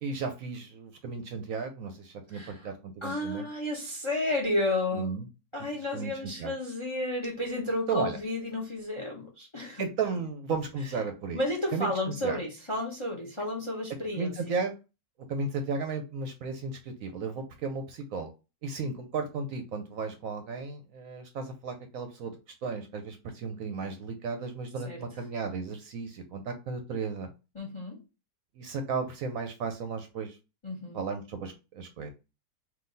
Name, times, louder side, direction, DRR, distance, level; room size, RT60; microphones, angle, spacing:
voice 1, 0.0-3.5 4.9-5.2 5.9-6.1 6.4-6.5 7.9-8.2 9.8-11.4 11.7-11.9 12.2-12.4 14.2-14.7 15.3-18.3 18.6-22.3 22.6-27.3 28.6-30.4 30.9-32.1, right 4 dB, 65° right, 6 dB, 1.0 m, -34 dB
voice 2, 2.3-2.7 3.0-5.1 5.5-9.8 10.8-10.9 11.3-14.6 24.8-25.0 27.5-28.0 30.6-31.0, left 1 dB, 25° left, 0 dB, 0.7 m, -32 dB
3.9 x 2.7 x 3.9 m, 0.29 s
omnidirectional pair, 1.7 m